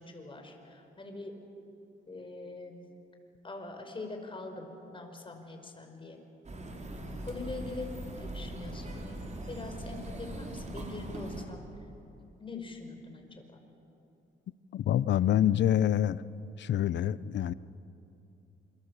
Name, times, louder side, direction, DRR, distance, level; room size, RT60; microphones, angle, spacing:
voice 1, 0.0-1.3 2.1-2.8 3.4-6.2 7.3-7.9 8.2-11.6 12.4-13.2 13.5-13.6, left 3 dB, 25° left, 4 dB, 5.3 m, -43 dB
sound 1, 6.4-11.4, right 1 dB, 35° right, 4.8 m, -40 dB
voice 2, 14.7-16.2 16.6-17.5, left 11 dB, 65° left, 18 dB, 0.8 m, -26 dB
28.0 x 23.5 x 8.3 m, 2.8 s
cardioid pair, 90°, 20 cm